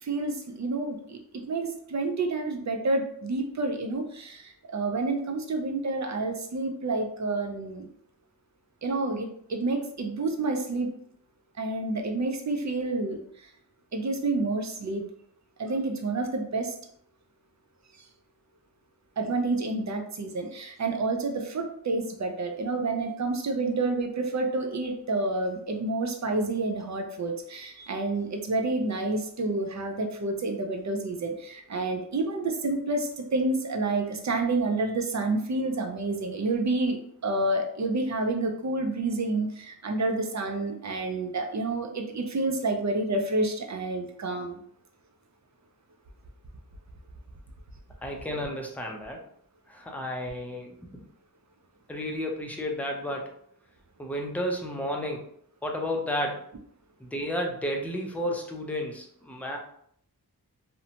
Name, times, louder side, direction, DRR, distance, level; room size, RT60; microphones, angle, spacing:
voice 1, 0.0-7.9 8.8-10.9 11.6-13.5 13.9-15.0 15.6-16.7 19.2-44.6, right 2 dB, 45° right, 4 dB, 0.5 m, -29 dB
voice 2, 48.0-49.2 49.7-50.8 51.9-53.3 54.0-55.3 55.6-56.4 57.0-59.6, equal, 5° left, 1 dB, 0.5 m, -32 dB
2.7 x 2.1 x 2.8 m, 0.66 s
wide cardioid pair, 65°, 39 cm